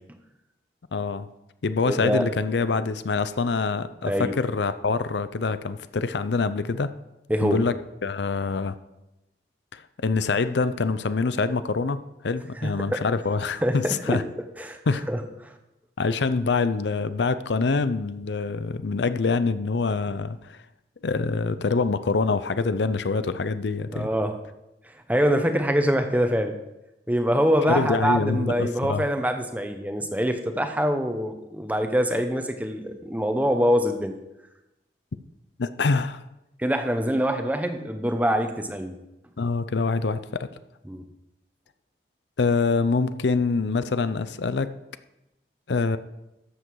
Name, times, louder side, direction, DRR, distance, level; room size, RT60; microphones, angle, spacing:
voice 1, 0.9-1.3 1.6-6.9 7.4-7.7 8.0-8.7 9.7-12.0 12.2-14.2 14.9-15.0 16.0-20.6 21.0-24.1 27.7-29.0 35.6-36.2 39.4-40.5 42.4-44.7 45.7-46.0, left 4 dB, 75° left, 13 dB, 0.6 m, -25 dB
voice 2, 1.9-2.3 4.0-4.3 7.3-7.6 12.6-13.0 13.6-14.2 14.6-14.8 15.1-15.5 23.9-24.4 25.1-26.5 27.1-34.1 36.6-39.0 40.9-41.0, equal, 10° right, 7 dB, 0.8 m, -24 dB
13.0 x 7.8 x 4.7 m, 0.94 s
head